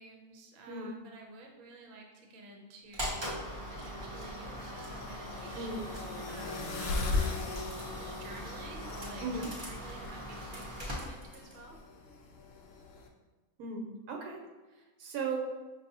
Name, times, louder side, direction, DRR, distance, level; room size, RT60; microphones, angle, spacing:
voice 1, 0.0-11.8, right 2 dB, 65° right, 1 dB, 1.0 m, -51 dB
sound 1, 2.9-11.6, equal, 30° right, 0.5 m, -41 dB
sound 2, 3.1-13.1, left 3 dB, 75° left, 0.5 m, -40 dB
voice 2, 5.5-5.9 9.2-9.5 13.6-14.4 15.0-15.4, right 4 dB, 85° right, 1 dB, 1.1 m, -36 dB
5.4 x 2.6 x 2.7 m, 1.2 s
omnidirectional pair, 1.6 m